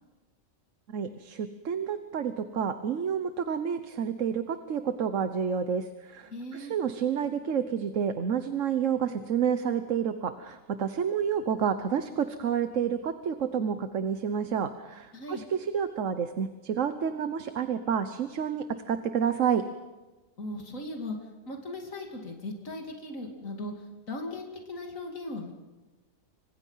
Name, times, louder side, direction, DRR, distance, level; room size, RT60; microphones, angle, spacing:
voice 1, 0.9-19.6, right 7 dB, 70° right, 10 dB, 1.4 m, -29 dB
voice 2, 6.3-6.8 15.1-15.4 20.4-21.2 21.5-25.5, left 1 dB, 80° left, 2 dB, 3.0 m, -38 dB
30.0 x 25.5 x 5.7 m, 1.2 s
omnidirectional pair, 1.4 m